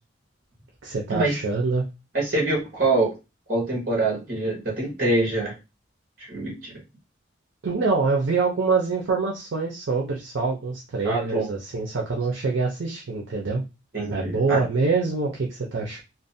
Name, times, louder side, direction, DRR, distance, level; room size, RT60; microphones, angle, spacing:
voice 1, 0.8-1.8 7.6-13.6 14.1-16.0, right 4 dB, 70° right, -1 dB, 0.5 m, -25 dB
voice 2, 2.1-3.1 3.5-5.5 6.2-6.8 11.0-11.5 13.9-14.6, right 2 dB, 50° right, -3 dB, 1.0 m, -25 dB
2.5 x 2.0 x 2.6 m, 0.26 s
head